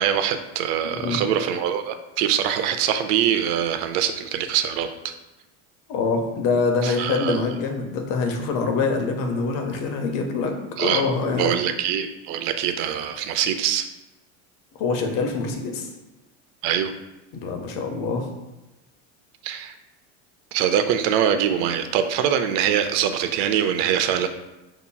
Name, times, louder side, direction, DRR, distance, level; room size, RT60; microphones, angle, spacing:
voice 1, 0.0-5.1 6.8-7.4 10.8-11.0 11.4-13.9 16.6-16.9 19.4-19.7 20.5-24.3, right 9 dB, 75° right, 8 dB, 0.6 m, -23 dB
voice 2, 5.9-11.6 14.7-15.9 17.3-18.3, left 4 dB, 60° left, 4 dB, 0.9 m, -25 dB
6.7 x 2.9 x 2.3 m, 1.0 s
cardioid pair, 140°, 36 cm